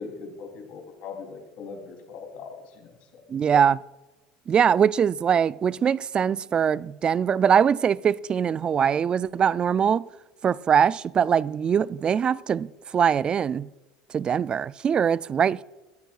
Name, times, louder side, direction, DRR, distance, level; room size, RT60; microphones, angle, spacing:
voice 1, 0.0-3.2, left 5 dB, 60° left, 3.4 m, -40 dB
voice 2, 3.3-3.8 4.5-10.1 10.4-13.7 14.1-15.6, right 7 dB, 35° right, 0.3 m, -22 dB
23.0 x 8.9 x 2.4 m
hypercardioid pair, 85°, 3 cm